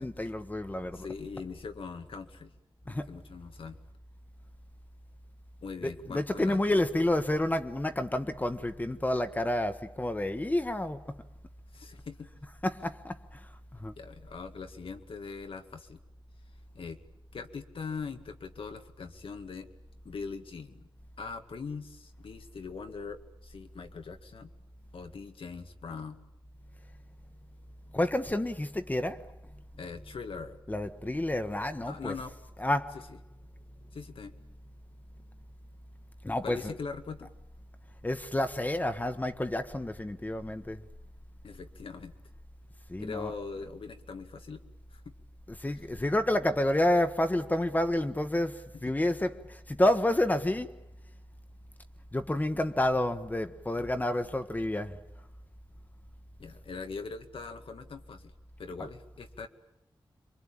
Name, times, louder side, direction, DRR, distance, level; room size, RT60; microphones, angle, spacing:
voice 1, 0.0-1.1 2.9-3.1 5.8-11.2 12.6-13.9 27.9-29.3 30.7-32.1 32.6-33.0 36.2-36.7 38.0-40.8 42.9-43.3 45.6-50.8 52.1-55.0 58.8-58.9, left 1 dB, 20° left, 1.2 m, -29 dB
voice 2, 0.9-2.5 2.9-3.8 5.6-6.6 11.7-12.3 14.0-16.0 16.7-17.0 17.3-19.7 20.0-20.9 21.2-24.5 24.9-26.2 29.7-30.6 31.9-32.3 33.9-34.3 36.4-37.3 41.4-42.1 43.0-44.6 44.9-45.1 56.4-58.3 58.6-59.5, left 5 dB, 90° left, 2.0 m, -41 dB
27.5 x 24.0 x 8.9 m
wide cardioid pair, 120°, 9 cm